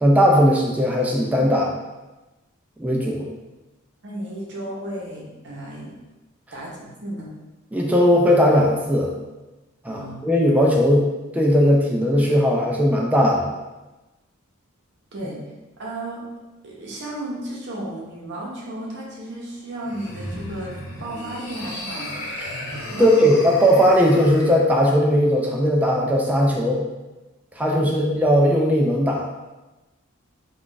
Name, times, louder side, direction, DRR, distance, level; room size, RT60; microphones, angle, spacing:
voice 1, 0.0-1.8 2.8-3.3 7.7-9.1 9.8-11.1 11.3-13.5 22.4-22.5 23.0-26.8 27.6-29.4, equal, 5° right, -2 dB, 0.3 m, -18 dB
voice 2, 4.0-6.0 6.5-7.3 9.9-10.5 15.1-15.4 15.8-16.2 16.6-22.2 22.9-23.3, right 1 dB, 55° right, -4 dB, 0.8 m, -34 dB
sound 1, 19.8-24.6, left 1 dB, 85° left, 0.9 m, -34 dB
2.4 x 2.3 x 3.8 m, 1.1 s
head